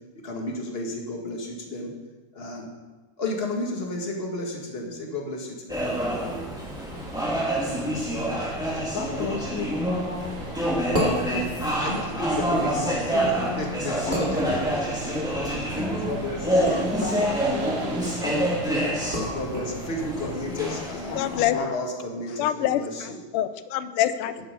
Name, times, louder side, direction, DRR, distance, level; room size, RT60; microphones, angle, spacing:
voice 1, 0.2-1.9 2.3-2.7 3.2-5.8 11.8-12.9 13.6-14.4 14.7-15.1 15.5-15.7 16.1-17.0 19.3-23.2 24.4-24.5, left 1 dB, 30° left, 0 dB, 1.8 m, -32 dB
sound 1, 5.7-21.4, right 1 dB, ahead, 2.3 m, -27 dB
sound 2, 6.9-19.5, right 4 dB, 80° right, 2.2 m, -44 dB
voice 2, 8.7-11.9 12.5-15.0 15.8-19.6 20.0-21.8 22.3-22.4, left 6 dB, 65° left, 2 dB, 1.5 m, -36 dB
sound 3, 10.2-20.6, right 1 dB, 25° right, 2.2 m, -35 dB
voice 3, 21.2-21.5 22.4-24.5, left 12 dB, 90° left, 13 dB, 1.5 m, -26 dB
11.0 x 8.7 x 5.3 m, 1.2 s
omnidirectional pair, 2.4 m